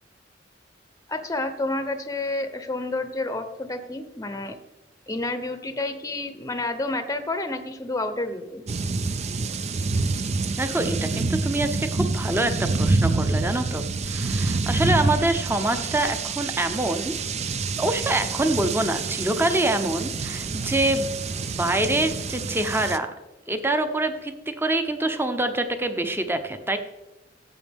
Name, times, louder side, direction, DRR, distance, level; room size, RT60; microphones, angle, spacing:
voice 1, 1.1-4.6 5.1-8.6, left 2 dB, 20° left, 8 dB, 0.8 m, -29 dB
sound 1, 8.7-23.0, right 3 dB, 35° right, 0.5 m, -27 dB
voice 2, 10.6-17.1 17.8-21.1 21.5-23.1 23.5-26.8, right 1 dB, 10° right, 8 dB, 0.8 m, -25 dB
15.5 x 7.5 x 3.5 m, 1.0 s
head